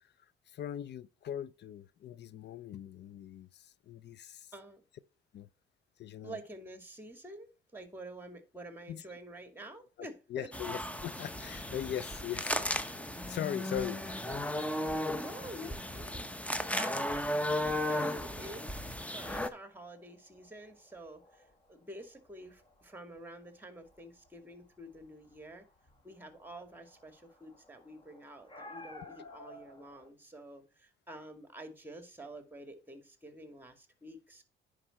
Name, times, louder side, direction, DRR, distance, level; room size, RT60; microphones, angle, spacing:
voice 1, 0.5-4.5 5.3-5.5 6.0-6.4 8.9-9.0 10.3-12.8 13.3-14.0, left 10 dB, 60° left, 0.5 m, -40 dB
voice 2, 6.2-10.5 13.7-14.2 15.1-17.2 17.6-25.7 26.0-34.4, right 1 dB, 10° right, 2.2 m, -49 dB
sound 1, 10.5-19.5, left 1 dB, 5° left, 0.9 m, -35 dB
sound 2, 18.8-30.1, left 1 dB, 25° left, 2.1 m, -56 dB
9.9 x 4.9 x 4.2 m
cardioid pair, 90°, 20 cm